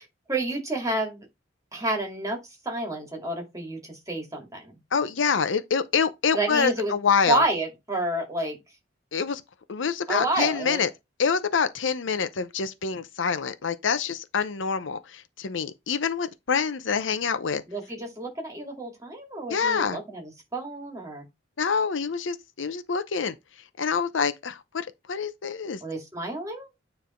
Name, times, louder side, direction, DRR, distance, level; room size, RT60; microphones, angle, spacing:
voice 1, 0.3-1.3 1.7-2.4 2.6-4.8 6.3-6.9 7.3-8.6 10.1-10.8 17.7-21.2 25.8-26.7, right 2 dB, 15° right, 2.4 m, -29 dB
voice 2, 4.9-7.4 9.1-9.4 9.7-10.9 11.2-17.6 19.5-20.0 21.6-23.3 23.8-25.8, left 6 dB, 75° left, 0.6 m, -26 dB
9.2 x 3.3 x 4.4 m
head